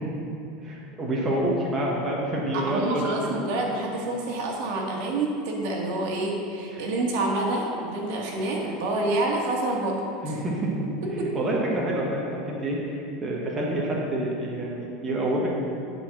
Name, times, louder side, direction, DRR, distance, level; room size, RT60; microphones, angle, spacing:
voice 1, 0.6-3.0 6.7-6.9 10.2-10.9 11.3-15.5, right 1 dB, 15° right, -4 dB, 1.1 m, -27 dB
voice 2, 2.5-10.4 11.0-11.3, right 2 dB, 65° right, -1 dB, 1.6 m, -28 dB
10.0 x 4.4 x 5.9 m, 2.7 s
supercardioid pair, 160°, 0 cm